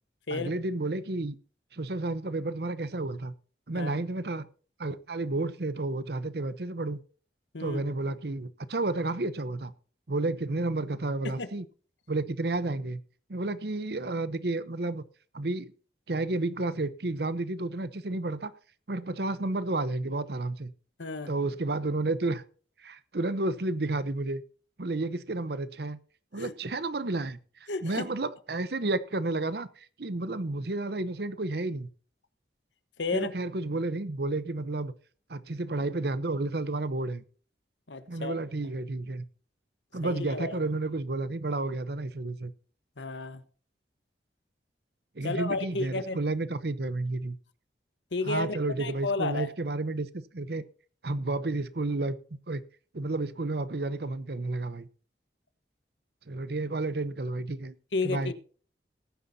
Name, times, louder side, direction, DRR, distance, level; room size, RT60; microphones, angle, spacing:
voice 1, 0.3-1.4 1.7-3.3 3.7-4.5 4.8-7.0 7.6-9.7 10.1-11.7 12.1-13.0 13.3-15.0 15.3-15.7 16.1-18.5 18.9-20.7 21.3-22.4 22.8-24.4 24.8-26.0 26.3-27.4 27.8-31.9 33.1-34.9 35.3-37.2 38.1-39.2 39.9-42.5 45.1-47.4 48.2-50.6 51.0-52.6 52.9-54.9 56.3-57.7 58.0-58.3, right 2 dB, 65° right, 0.8 m, -31 dB
voice 2, 21.0-21.3 26.3-26.5 27.7-28.1 33.0-33.3 37.9-38.3 40.0-40.6 43.0-43.4 45.2-46.2 48.1-49.5 57.9-58.3, left 3 dB, 90° left, 1.2 m, -32 dB
18.5 x 9.8 x 2.8 m
head